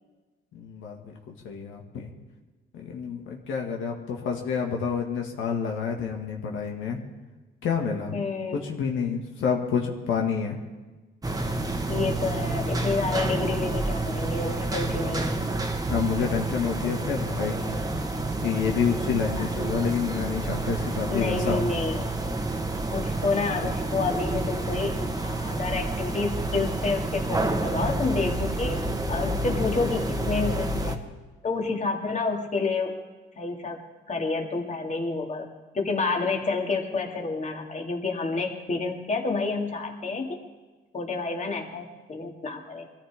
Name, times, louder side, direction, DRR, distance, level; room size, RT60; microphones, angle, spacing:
voice 1, 0.5-2.1 2.7-7.0 7.6-8.2 8.6-10.6 15.9-17.8 18.4-21.7, left 6 dB, 80° left, 1 dB, 1.9 m, -28 dB
voice 2, 8.1-8.6 11.9-15.4 16.8-16.9 19.4-19.5 21.1-22.1 22.9-28.8 29.1-31.0 31.4-32.9 33.4-33.8 34.1-35.5 35.7-40.4 40.9-42.9, left 3 dB, 35° left, 2 dB, 2.4 m, -29 dB
sound 1, 11.2-31.0, right 2 dB, 20° right, 1.4 m, -29 dB
22.5 x 14.0 x 3.6 m, 1.2 s
cardioid pair, 90°, 20 cm